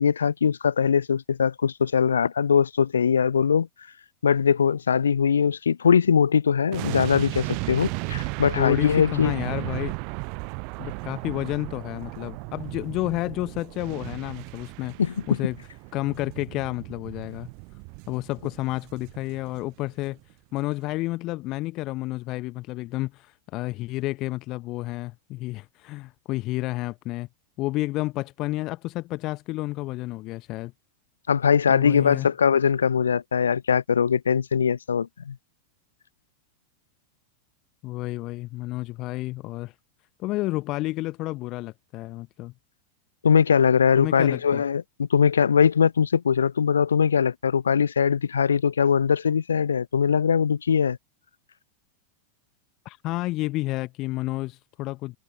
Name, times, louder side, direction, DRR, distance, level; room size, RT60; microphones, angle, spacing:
voice 1, 0.0-3.7 4.2-9.3 15.0-15.1 31.3-35.4 43.2-51.0, left 7 dB, 70° left, 0.4 m, -21 dB
sound 1, 6.7-19.9 20.1-20.3, right 37 dB, 45° right, 0.3 m, -35 dB
voice 2, 8.6-10.0 10.8-15.0 15.3-15.6 15.9-17.5 18.1-20.2 20.5-27.3 27.6-30.7 31.7-32.3 37.8-39.7 40.2-42.5 44.0-44.6 52.8-55.2, left 19 dB, 40° left, 0.9 m, -30 dB
figure-of-eight pair, 90°, 0 cm